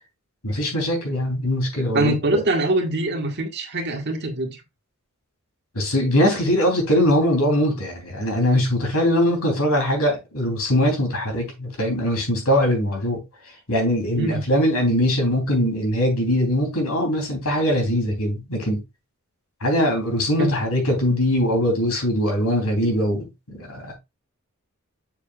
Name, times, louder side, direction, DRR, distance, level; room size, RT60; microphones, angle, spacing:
voice 1, 0.4-2.4 5.7-13.2 13.7-18.8 19.6-24.0, equal, 85° left, 3.5 m, -21 dB
voice 2, 1.9-4.6 14.2-14.4 20.4-20.5, right 2 dB, 50° right, 1.7 m, -23 dB
7.0 x 6.7 x 2.4 m
head